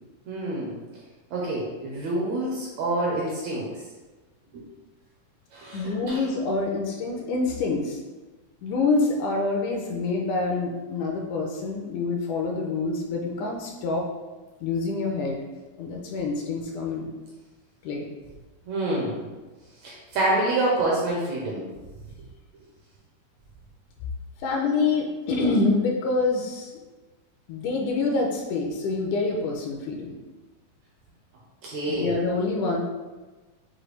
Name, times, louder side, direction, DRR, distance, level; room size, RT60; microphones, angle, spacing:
voice 1, 0.3-0.8 1.3-3.8 4.5-4.6 5.5-6.2 18.7-19.3 19.8-21.7 31.6-32.1, right 2 dB, 75° right, -4 dB, 1.7 m, -27 dB
voice 2, 5.7-8.0 8.6-14.1 14.6-15.4 15.8-17.1 17.8-18.1 24.4-26.7 27.5-30.2 31.9-32.8, left 3 dB, 80° left, 0 dB, 2.0 m, -26 dB
6.5 x 2.2 x 3.1 m, 1.2 s
omnidirectional pair, 3.7 m